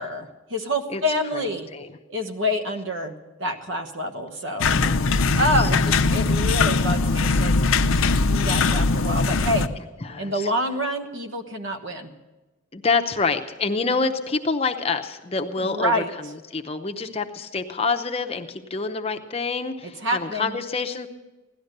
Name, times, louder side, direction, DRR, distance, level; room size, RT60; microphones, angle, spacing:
voice 1, 0.0-1.7 2.1-4.7 5.3-8.0 8.3-9.7 10.2-12.1 15.6-16.1 19.8-20.6, equal, 60° right, 6 dB, 1.2 m, -27 dB
sound 1, 4.6-9.7, left 3 dB, 75° left, 0.6 m, -21 dB
voice 2, 4.8-5.4 10.0-10.5 12.7-15.9 16.5-21.1, left 4 dB, 30° left, 6 dB, 0.7 m, -27 dB
16.5 x 12.0 x 6.6 m, 1.1 s
head